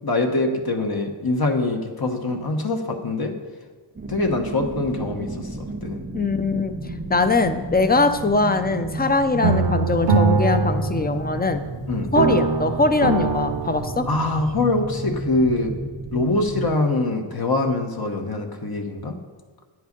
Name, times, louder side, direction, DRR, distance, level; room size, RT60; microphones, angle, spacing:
voice 1, 0.0-3.3 4.1-6.0 11.9-12.1 14.1-15.7 16.1-19.2, left 2 dB, 50° left, 4 dB, 1.2 m, -24 dB
sound 1, 4.0-16.8, right 2 dB, 25° right, 0.6 m, -33 dB
voice 2, 6.1-6.7 7.1-11.6 12.1-14.1, left 3 dB, 20° left, 9 dB, 0.6 m, -21 dB
sound 2, 9.4-11.8 12.2-14.4, right 4 dB, 70° right, 0.9 m, -23 dB
9.6 x 7.8 x 5.3 m, 1.4 s
wide cardioid pair, 115°, 45 cm